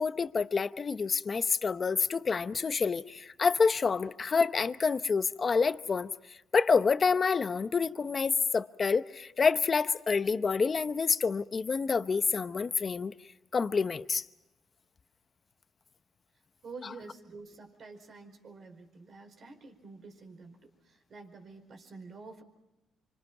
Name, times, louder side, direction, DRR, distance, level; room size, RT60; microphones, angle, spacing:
voice 1, 0.0-13.1 13.5-14.2, left 5 dB, 40° left, 0.8 m, -28 dB
voice 2, 16.6-22.4, right 3 dB, 55° right, 4.7 m, -48 dB
27.5 x 25.5 x 5.9 m
cardioid pair, 90°, 0 cm